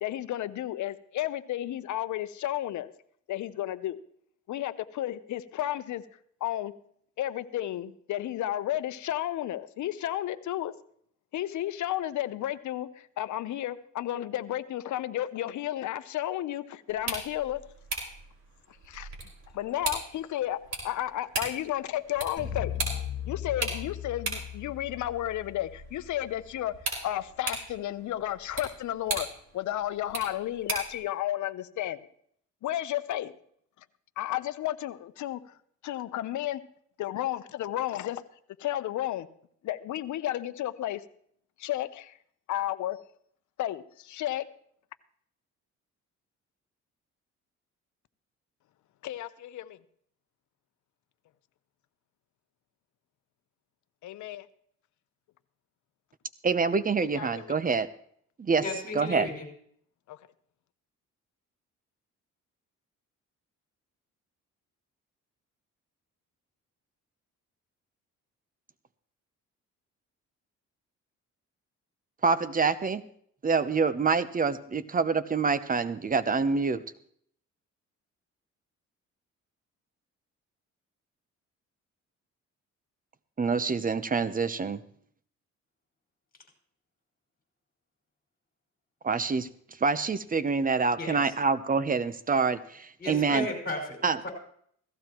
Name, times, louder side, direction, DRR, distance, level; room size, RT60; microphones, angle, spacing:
voice 1, 0.0-2.9 3.3-4.0 4.5-6.0 6.4-6.7 7.2-10.7 11.3-17.6 18.9-19.1 19.5-20.6 20.8-22.8 23.2-29.3 29.5-32.0 32.6-33.3 34.2-35.4 35.8-36.6 37.0-38.2 38.6-39.3 39.6-41.0 41.6-42.2 42.5-43.0 43.6-44.5 49.0-49.8 54.0-54.5 57.0-57.6 60.1-60.2, left 13 dB, 70° left, 13 dB, 0.8 m, -32 dB
sound 1, 16.9-31.0, right 3 dB, 60° right, 5.1 m, -38 dB
sound 2, 22.4-26.7, left 10 dB, 15° left, 3.0 m, -38 dB
voice 2, 56.4-57.9 58.4-58.6 58.9-59.3 72.2-73.0 73.4-76.8 83.4-84.8 89.0-89.5 89.8-93.5 94.0-94.2, right 5 dB, 30° right, 14 dB, 0.8 m, -26 dB
voice 3, 58.6-59.5 91.0-91.2 93.0-94.0 94.2-94.3, left 2 dB, 30° left, 2 dB, 5.5 m, -34 dB
17.0 x 14.5 x 3.0 m, 0.63 s
cardioid pair, 90°, 30 cm